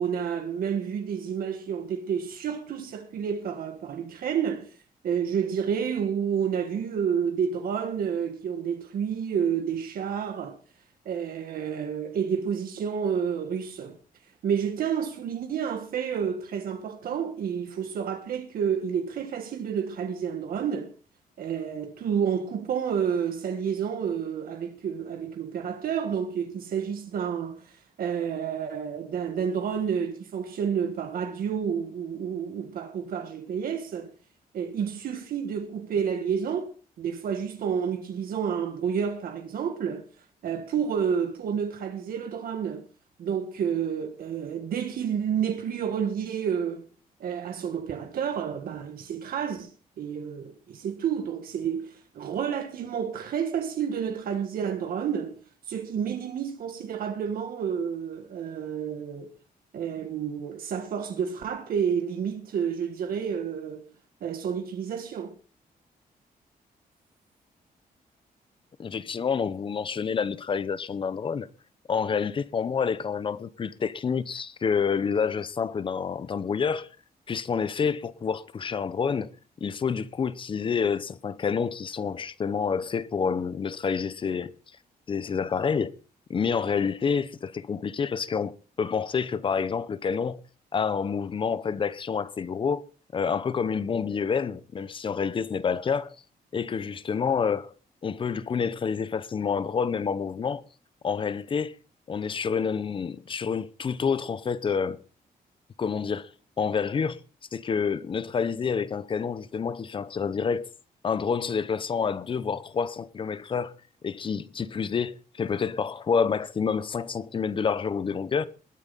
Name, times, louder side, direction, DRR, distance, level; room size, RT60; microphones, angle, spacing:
voice 1, 0.0-4.8 5.0-10.6 11.0-14.0 14.4-20.9 21.4-34.1 34.5-36.7 37.0-40.1 40.4-42.9 43.2-46.9 47.2-49.7 50.0-55.3 55.7-59.3 59.7-63.9 64.2-65.3, right 7 dB, 70° right, 1.5 m, -30 dB
voice 2, 68.8-71.5 71.9-76.9 77.3-79.3 79.6-84.5 85.1-85.9 86.3-90.4 90.7-92.8 93.1-96.1 96.5-97.7 98.0-100.6 101.0-101.7 102.1-105.0 105.8-106.3 106.6-107.2 107.5-110.6 111.0-113.7 114.0-118.5, left 6 dB, 35° left, 0.7 m, -28 dB
20.5 x 8.8 x 4.0 m
wide cardioid pair, 160°, 15 cm